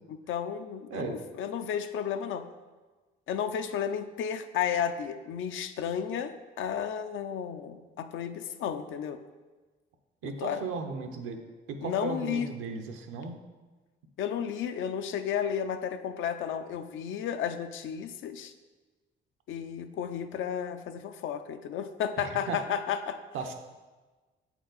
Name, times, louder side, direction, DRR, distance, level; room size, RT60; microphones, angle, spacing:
voice 1, 0.3-2.5 3.3-9.2 10.2-10.6 11.8-12.5 14.2-18.5 19.5-23.2, left 8 dB, 80° left, 9 dB, 0.5 m, -33 dB
voice 2, 10.2-13.4 22.2-22.6 23.3-23.5, right 4 dB, 85° right, 5 dB, 0.7 m, -36 dB
7.6 x 4.5 x 3.9 m, 1.3 s
cardioid pair, 90°, 20 cm